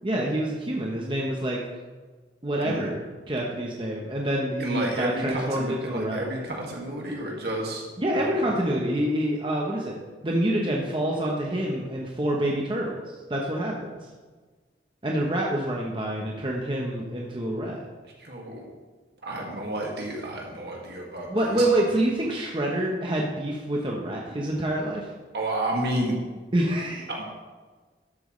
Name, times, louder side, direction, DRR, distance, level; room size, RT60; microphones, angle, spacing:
voice 1, 0.0-1.6 2.4-3.0 3.3-6.2 8.0-10.0 10.2-14.1 15.0-17.8 21.3-25.1 26.5-27.1, right 1 dB, 30° right, -2 dB, 0.9 m, -27 dB
voice 2, 4.6-7.8 8.1-8.5 18.2-18.7 19.2-21.7 25.3-26.2 27.1-27.2, right 1 dB, 65° right, -1 dB, 2.0 m, -31 dB
12.5 x 7.7 x 3.2 m, 1.4 s
head